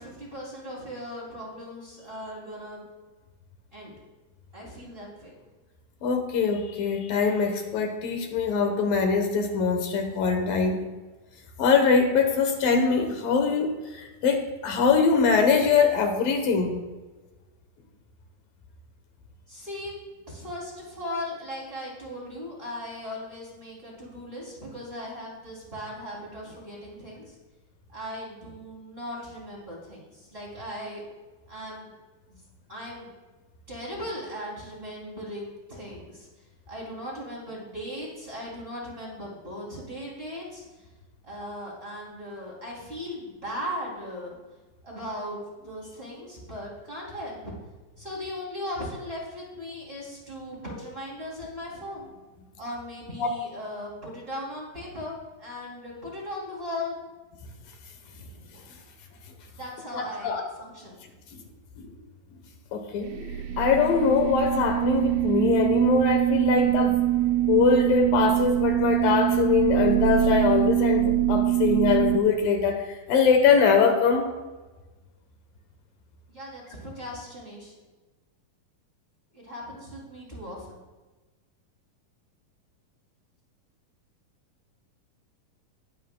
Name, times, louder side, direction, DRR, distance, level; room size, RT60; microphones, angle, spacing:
voice 1, 0.0-2.8 3.7-3.9 4.5-5.4 19.5-19.9 20.3-27.4 27.9-31.0 31.5-31.9 32.3-33.1 33.7-36.3 36.7-40.9 41.2-44.3 44.8-47.5 48.0-52.1 52.6-56.9 58.1-58.6 59.5-61.1 76.3-77.7 79.3-80.8, left 1 dB, 15° right, -5 dB, 2.7 m, -38 dB
voice 2, 6.0-10.9 11.6-16.8 53.2-53.3 59.9-60.4 61.3-61.4 61.8-61.9 62.7-67.0 67.5-74.3, left 5 dB, 75° left, 5 dB, 2.8 m, -23 dB
sound 1, 63.0-72.2, right 14 dB, 85° right, 2.7 m, -24 dB
20.5 x 9.4 x 2.3 m, 1.2 s
omnidirectional pair, 4.1 m